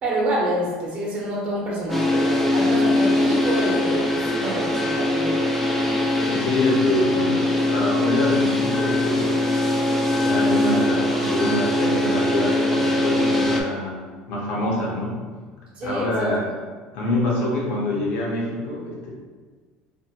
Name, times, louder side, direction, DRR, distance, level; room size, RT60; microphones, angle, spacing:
voice 1, 0.0-5.4 15.8-16.3, right 1 dB, 45° right, -4 dB, 0.9 m, -27 dB
sound 1, 1.9-13.6, left 1 dB, 5° left, 0.4 m, -21 dB
voice 2, 6.2-9.4 10.2-15.2 15.8-16.5 16.9-19.1, left 1 dB, 75° left, -3 dB, 0.8 m, -25 dB
2.6 x 2.1 x 2.8 m, 1.5 s
supercardioid pair, 115°, 3 cm